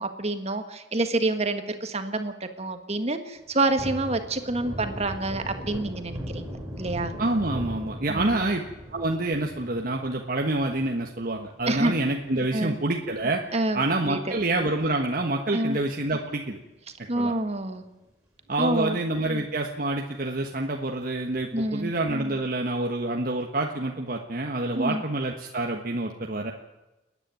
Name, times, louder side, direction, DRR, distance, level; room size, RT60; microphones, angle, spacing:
voice 1, 0.0-7.1 8.1-8.5 11.7-11.9 12.5-12.8 13.5-14.2 15.5-15.8 17.1-17.8 18.6-19.0 21.5-21.9 24.7-25.0, right 2 dB, 35° right, 8 dB, 1.6 m, -27 dB
Thunder, 3.4-14.1 14.5-14.6 14.9-16.4 16.7-16.9 17.2-18.0 18.4-18.5 18.9-19.0 21.3-21.9, equal, 5° right, 6.3 m, -40 dB
voice 2, 7.2-8.6 8.9-13.4 13.7-16.6 17.1-17.3 18.5-26.5, right 2 dB, 55° right, 1 dB, 1.4 m, -27 dB
29.0 x 10.0 x 9.5 m, 1.0 s
head